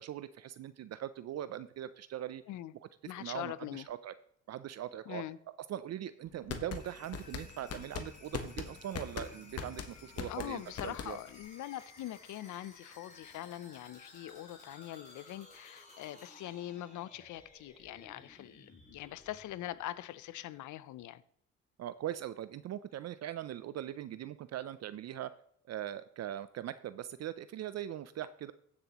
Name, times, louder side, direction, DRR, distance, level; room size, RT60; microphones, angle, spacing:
voice 1, 0.0-2.4 3.0-4.1 4.5-5.2 5.7-11.2 21.8-25.3 25.7-28.5, right 11 dB, 60° right, 0.5 m, -41 dB
voice 2, 3.0-3.9 5.1-5.4 10.3-21.2, left 14 dB, 75° left, 0.6 m, -43 dB
sound 1, 6.3-11.4, left 6 dB, 55° left, 1.1 m, -41 dB
sound 2, 6.6-20.4, left 2 dB, 25° left, 4.8 m, -57 dB
15.0 x 7.0 x 3.0 m
cardioid pair, 90°, 30 cm